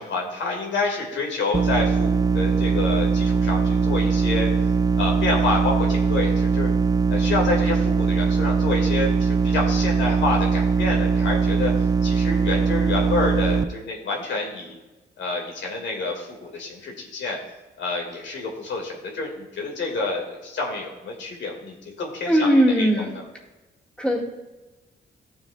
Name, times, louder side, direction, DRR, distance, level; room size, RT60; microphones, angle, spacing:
voice 1, 0.0-4.5 5.0-6.7 7.1-14.8 15.2-17.4 17.8-23.2, left 3 dB, 80° left, 0 dB, 2.3 m, -28 dB
sound 1, 1.5-13.6, right 5 dB, 20° right, 0.4 m, -21 dB
voice 2, 22.3-23.2 24.0-24.2, equal, 5° left, -3 dB, 2.0 m, -19 dB
14.5 x 7.1 x 2.4 m, 1.1 s
cardioid pair, 105°, 19 cm